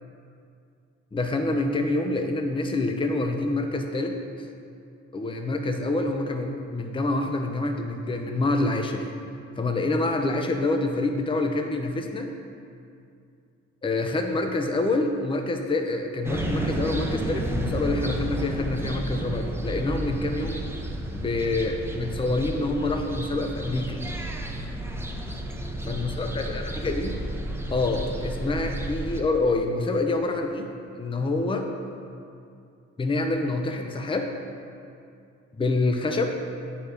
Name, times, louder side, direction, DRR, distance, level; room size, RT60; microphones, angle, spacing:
voice 1, 1.1-4.5 5.1-9.1 9.6-12.3 13.8-20.6 21.0-24.0 25.8-27.2 27.7-30.7 31.0-31.7 33.0-34.3 35.6-36.4, left 2 dB, 15° left, 5 dB, 0.7 m, -27 dB
sound 1, 16.2-29.2, right 1 dB, 10° right, 0.8 m, -32 dB
10.5 x 4.7 x 5.2 m, 2.4 s
cardioid pair, 90°, 30 cm